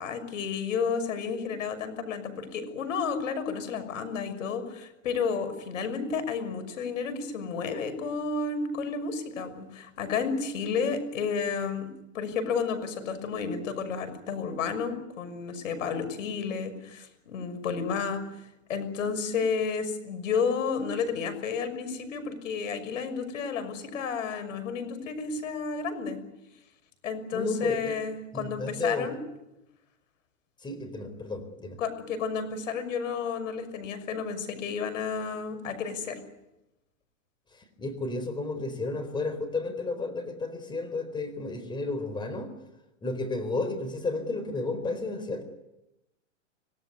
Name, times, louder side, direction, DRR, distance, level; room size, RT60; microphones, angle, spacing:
voice 1, 0.0-11.9 12.1-18.2 18.7-26.2 27.0-29.2 31.8-36.2, left 5 dB, 75° left, 10 dB, 6.3 m, -31 dB
voice 2, 27.3-27.9 28.3-29.1 30.6-31.8 37.8-42.5 43.0-45.4, left 3 dB, 10° left, 10 dB, 4.2 m, -32 dB
26.0 x 18.5 x 9.6 m, 0.92 s
hypercardioid pair, 145°, 39 cm